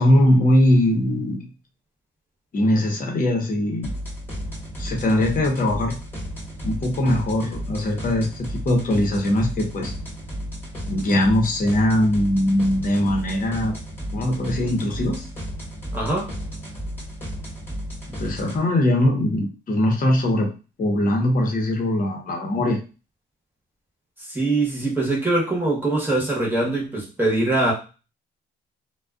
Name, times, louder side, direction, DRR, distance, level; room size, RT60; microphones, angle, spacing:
voice 1, 0.0-1.5 2.5-3.9 4.8-6.0 6.6-9.9 10.9-13.7 14.1-15.3 18.2-20.5 20.8-22.8, left 1 dB, 45° left, 0 dB, 0.9 m, -21 dB
sound 1, 3.8-18.6, equal, 10° left, 1.3 m, -33 dB
voice 2, 15.9-16.3 24.3-27.7, right 2 dB, 10° right, -4 dB, 1.0 m, -22 dB
2.4 x 2.2 x 2.3 m, 0.33 s
cardioid pair, 90°, 20 cm